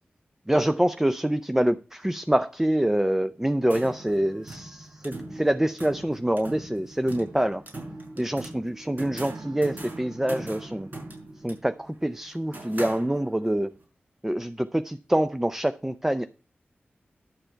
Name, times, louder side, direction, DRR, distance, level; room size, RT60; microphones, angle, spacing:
voice 1, 0.5-7.6 8.2-10.9 11.4-13.7 14.2-16.3, right 1 dB, 10° right, 0.5 m, -26 dB
sound 1, 3.4-13.6, right 2 dB, 50° right, 6.0 m, -41 dB
11.5 x 6.7 x 4.5 m
wide cardioid pair, 60°, 4 cm